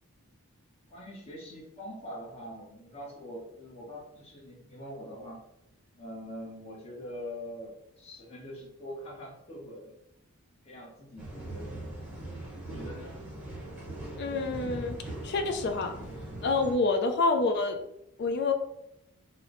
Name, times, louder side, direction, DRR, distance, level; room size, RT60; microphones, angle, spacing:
voice 1, 0.9-5.4 6.0-9.9 10.6-12.0 12.6-13.1, equal, 30° left, -3 dB, 0.8 m, -43 dB
sound 1, 11.2-16.7, right 1 dB, 5° right, 0.9 m, -40 dB
voice 2, 14.2-15.0 15.2-16.0 16.4-17.8 18.2-18.5, left 3 dB, 50° left, 5 dB, 0.4 m, -27 dB
3.1 x 2.0 x 3.7 m, 0.82 s
head